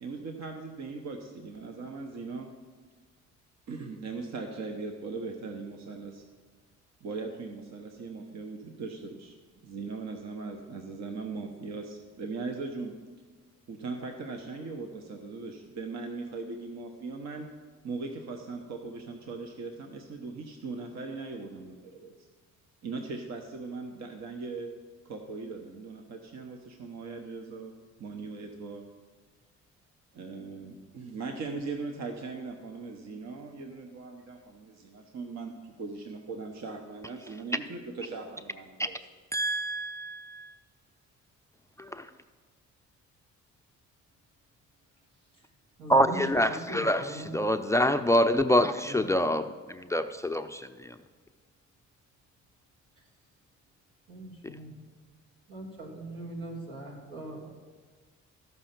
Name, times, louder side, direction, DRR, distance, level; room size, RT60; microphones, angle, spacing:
voice 1, 0.0-2.5 3.7-6.2 7.0-9.4 9.6-12.9 13.7-17.5 17.8-22.3 22.8-24.7 25.0-27.7 28.0-28.8 30.1-39.0, right 4 dB, 60° right, 3 dB, 1.0 m, -39 dB
voice 2, 39.3-40.5 41.8-42.1 45.9-51.0, equal, 10° left, 10 dB, 0.4 m, -26 dB
voice 3, 45.8-47.4 48.9-49.1 54.1-54.8 55.5-57.4, right 1 dB, 85° right, -2 dB, 2.7 m, -41 dB
13.5 x 5.6 x 5.9 m, 1.5 s
cardioid pair, 90°, 30 cm